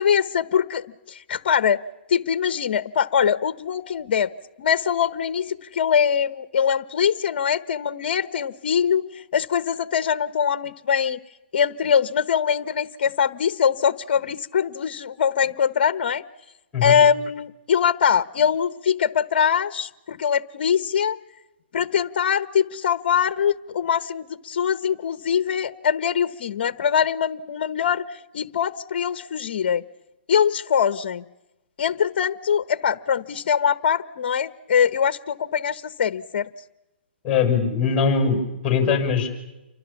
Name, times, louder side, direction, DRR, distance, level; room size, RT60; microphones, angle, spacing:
voice 1, 0.0-1.8 2.1-4.3 4.6-11.2 11.5-16.2 16.8-21.2 21.7-29.8 30.3-31.2 31.8-36.5, left 7 dB, 55° left, 15 dB, 1.1 m, -22 dB
voice 2, 37.2-39.3, left 6 dB, 20° left, 5 dB, 7.0 m, -21 dB
29.0 x 24.5 x 7.2 m, 0.98 s
hypercardioid pair, 145°, 6 cm